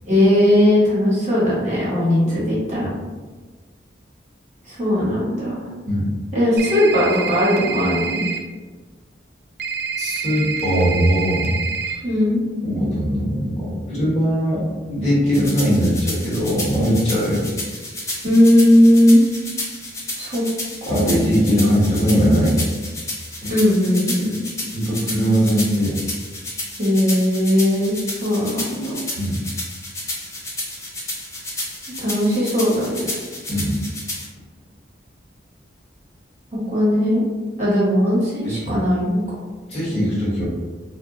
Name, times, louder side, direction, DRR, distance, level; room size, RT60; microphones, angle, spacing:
voice 1, 0.1-2.9 4.7-5.6 6.3-8.2 12.0-12.4 18.2-19.2 20.2-20.4 20.8-21.1 23.5-24.3 26.8-29.0 32.0-33.1 36.7-37.2 37.6-39.2, left 1 dB, 40° right, -8 dB, 1.0 m, -18 dB
sound 1, 6.6-8.4 9.6-11.9, right 6 dB, 55° right, 0.3 m, -27 dB
voice 2, 10.0-11.6 12.6-17.4 20.8-22.6 23.4-23.5 24.7-26.0 29.2-29.4 33.5-33.8 38.4-38.8 39.7-40.4, equal, 35° left, -8 dB, 1.0 m, -20 dB
sound 2, 15.3-34.3, left 1 dB, 15° left, 0.4 m, -31 dB
2.2 x 2.1 x 3.7 m, 1.3 s
head